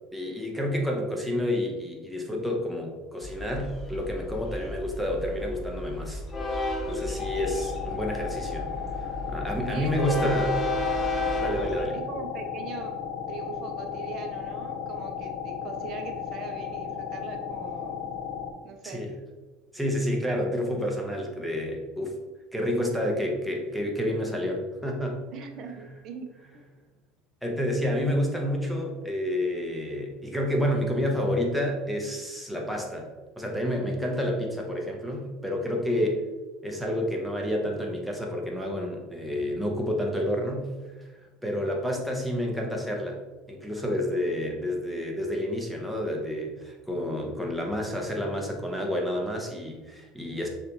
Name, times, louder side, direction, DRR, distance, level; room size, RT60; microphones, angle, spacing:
voice 1, 0.1-6.2 6.5-8.7 9.0-10.5 11.4-12.0 18.8-19.1 19.7-22.2 22.5-25.2 25.7-25.8 27.4-33.1 33.4-36.2 36.6-40.7 41.0-41.1 41.4-43.2 43.5-50.5, left 1 dB, 5° right, 0 dB, 0.9 m, -29 dB
Train, 3.2-11.8, left 2 dB, 30° left, 0.9 m, -32 dB
sound 1, 7.2-18.5, left 7 dB, 55° left, 0.7 m, -35 dB
voice 2, 9.7-10.3 11.9-13.0 13.3-18.1 18.6-19.0 25.3-26.3, right 5 dB, 50° right, 4 dB, 0.7 m, -40 dB
6.5 x 2.5 x 3.0 m, 1.2 s
supercardioid pair, 110°, 0 cm